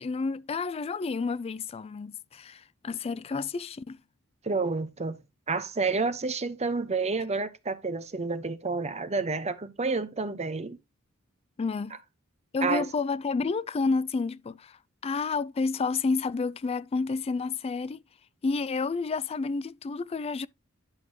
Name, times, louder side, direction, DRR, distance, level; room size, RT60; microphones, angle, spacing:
voice 1, 0.0-4.0 11.6-12.0 12.5-18.0 18.4-20.5, left 4 dB, 30° left, 0.3 m, -30 dB
voice 2, 4.4-5.2 5.5-10.8 12.6-12.9, right 4 dB, 30° right, 0.8 m, -29 dB
10.5 x 5.9 x 2.8 m
head